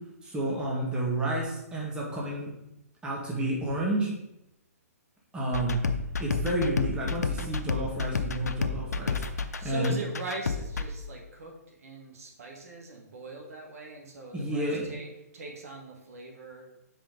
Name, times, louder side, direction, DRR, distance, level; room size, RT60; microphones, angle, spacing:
voice 1, 0.2-2.5 3.0-4.1 5.3-5.8 6.2-10.0 14.3-14.9, right 1 dB, 10° right, -3 dB, 1.7 m, -30 dB
sound 1, 5.5-10.8, left 5 dB, 85° left, 0.6 m, -31 dB
voice 2, 9.6-16.6, right 2 dB, 65° right, 1 dB, 1.7 m, -41 dB
7.4 x 5.1 x 3.9 m, 0.85 s
hypercardioid pair, 135°, 9 cm